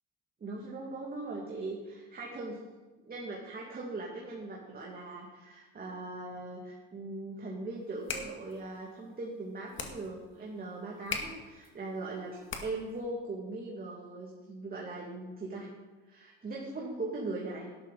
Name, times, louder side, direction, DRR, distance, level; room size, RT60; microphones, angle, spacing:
voice 1, 0.4-2.6 3.0-15.7 16.1-17.7, right 2 dB, 30° right, -2 dB, 2.6 m, -40 dB
sound 1, 7.8-13.0, left 5 dB, 40° left, 2.0 m, -42 dB
12.0 x 11.0 x 4.3 m, 1.2 s
supercardioid pair, 95°, 30 cm